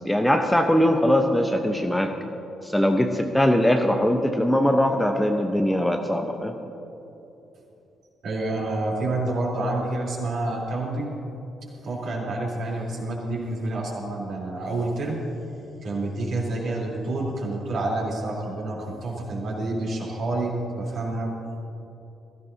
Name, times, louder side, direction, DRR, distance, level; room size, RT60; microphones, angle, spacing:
voice 1, 0.0-2.1 2.6-6.6, equal, 5° left, 5 dB, 0.9 m, -21 dB
voice 2, 8.2-11.1 11.8-15.2 15.8-21.3, right 2 dB, 50° right, -3 dB, 3.5 m, -28 dB
21.5 x 15.0 x 2.8 m, 3.0 s
figure-of-eight pair, 45°, 0 cm